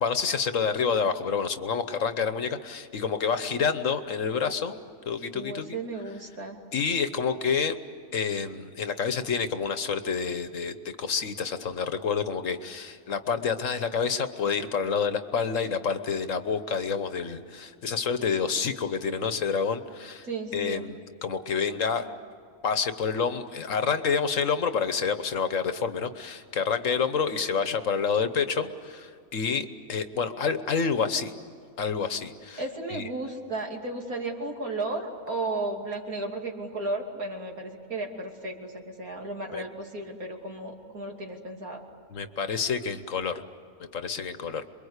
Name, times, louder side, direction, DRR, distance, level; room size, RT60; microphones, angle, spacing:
voice 1, 0.0-4.8 5.1-5.8 6.7-7.8 8.1-20.3 20.5-22.1 22.6-31.3 31.8-32.6 32.9-33.1 39.5-39.6 42.1-43.4 43.9-44.6, left 6 dB, 60° left, 10 dB, 1.4 m, -28 dB
voice 2, 5.3-6.6 20.2-20.9 32.6-41.8, right 2 dB, 80° right, 1 dB, 3.3 m, -34 dB
28.0 x 22.5 x 8.2 m, 2.3 s
omnidirectional pair, 1.5 m